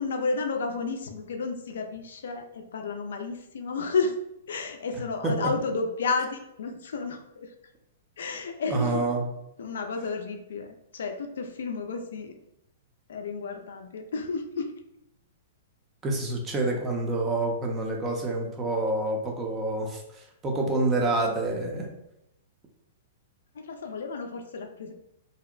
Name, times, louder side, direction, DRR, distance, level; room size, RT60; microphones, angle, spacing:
voice 1, 0.0-4.1 4.5-7.5 8.2-9.1 9.6-12.3 13.1-14.7 23.5-24.9, left 4 dB, 75° left, 4 dB, 0.3 m, -32 dB
voice 2, 8.7-9.3 16.0-21.9, right 2 dB, 20° right, 1 dB, 0.6 m, -27 dB
2.7 x 2.0 x 2.4 m, 0.83 s
hypercardioid pair, 125°, 0 cm